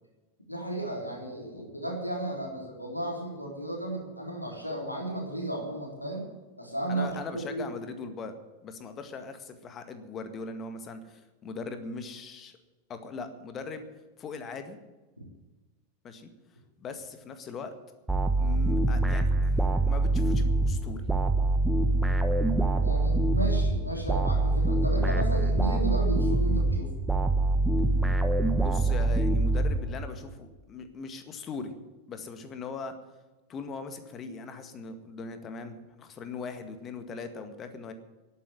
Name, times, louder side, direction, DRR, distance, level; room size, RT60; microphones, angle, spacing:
voice 1, 0.5-6.3 6.6-7.7 22.8-26.9, right 1 dB, 90° left, -1 dB, 3.5 m, -34 dB
voice 2, 6.9-8.3 8.6-12.5 12.9-13.9 14.2-14.8 16.0-16.3 16.8-17.7 18.4-21.0 28.5-31.7 32.1-32.9 33.5-37.9, left 4 dB, 25° left, 9 dB, 1.8 m, -40 dB
sound 1, 18.1-30.3, right 2 dB, 5° right, 1.2 m, -25 dB
11.5 x 9.4 x 9.9 m, 1.2 s
figure-of-eight pair, 90°, 0 cm